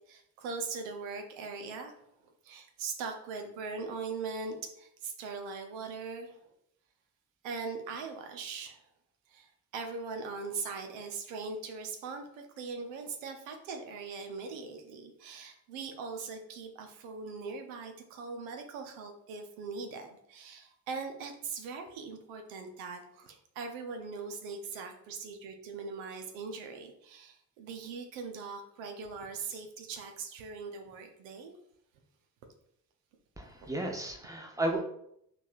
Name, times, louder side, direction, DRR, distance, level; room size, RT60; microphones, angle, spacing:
voice 1, 0.1-1.9 2.2-6.4 7.4-8.9 9.3-31.5 33.6-33.7, right 4 dB, 65° right, 5 dB, 0.9 m, -41 dB
voice 2, 33.4-34.8, right 1 dB, 5° right, 2 dB, 1.0 m, -33 dB
6.0 x 3.3 x 2.5 m, 0.74 s
figure-of-eight pair, 40°, 49 cm